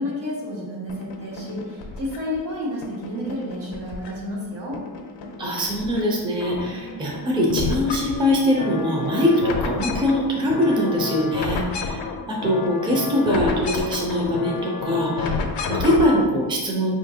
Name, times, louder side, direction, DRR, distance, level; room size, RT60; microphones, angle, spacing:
voice 1, 0.0-4.8, left 1 dB, 85° right, -5 dB, 1.4 m, -30 dB
sound 1, 0.9-2.4 2.8-4.4 4.7-6.0 6.3-16.3, left 4 dB, 85° left, 0.5 m, -30 dB
voice 2, 5.4-12.0 12.3-17.0, left 1 dB, 10° right, -2 dB, 0.4 m, -22 dB
5.1 x 2.5 x 2.7 m, 1.4 s
wide cardioid pair, 175°, 41 cm